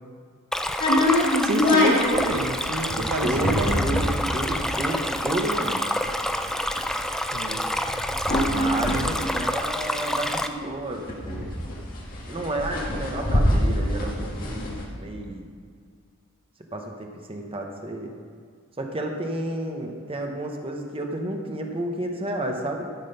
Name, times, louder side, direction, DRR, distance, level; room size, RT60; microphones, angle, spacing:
Stream, 0.5-10.5, left 1 dB, ahead, 0.4 m, -28 dB
sound 1, 0.8-10.3 10.6-10.7 10.9-14.8, left 1 dB, 40° left, 1.9 m, -25 dB
voice 1, 1.4-4.2 7.3-7.7 8.9-9.2, right 2 dB, 70° right, 5 dB, 1.0 m, -29 dB
voice 2, 2.9-5.8 8.5-11.6 12.3-15.5 16.7-18.1 18.8-22.9, right 1 dB, 25° right, 2 dB, 0.9 m, -31 dB
13.0 x 6.1 x 5.6 m, 2.1 s
head